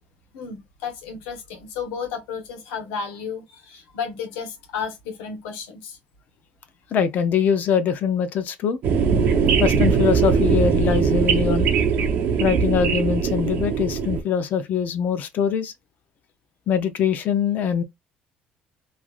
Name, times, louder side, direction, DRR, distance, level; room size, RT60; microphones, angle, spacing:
voice 1, 0.3-6.0, left 6 dB, 85° left, 1.0 m, -33 dB
voice 2, 6.9-8.8 9.6-11.7 12.4-15.7 16.7-17.8, left 7 dB, 55° left, 0.5 m, -23 dB
sound 1, 8.8-14.2, right 6 dB, 65° right, 0.7 m, -20 dB
3.2 x 2.4 x 2.4 m
supercardioid pair, 85°, 3 cm